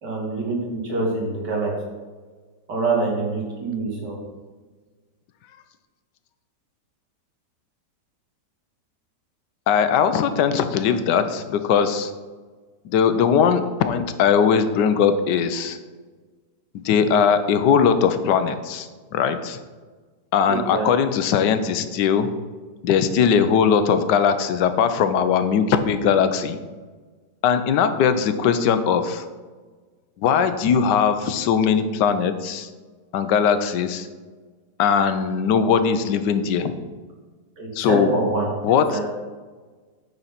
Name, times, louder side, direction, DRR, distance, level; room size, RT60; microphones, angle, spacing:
voice 1, 0.0-1.8 2.7-4.2 20.5-20.9 37.6-39.0, right 3 dB, 85° right, -2 dB, 2.5 m, -25 dB
voice 2, 9.7-12.1 12.8-15.8 16.8-19.6 20.3-22.3 22.8-26.6 27.4-29.2 30.2-32.7 33.1-34.1 34.8-36.7 37.7-38.1 38.6-39.0, left 7 dB, 85° left, 10 dB, 1.3 m, -20 dB
9.0 x 4.0 x 5.8 m, 1.4 s
omnidirectional pair, 1.8 m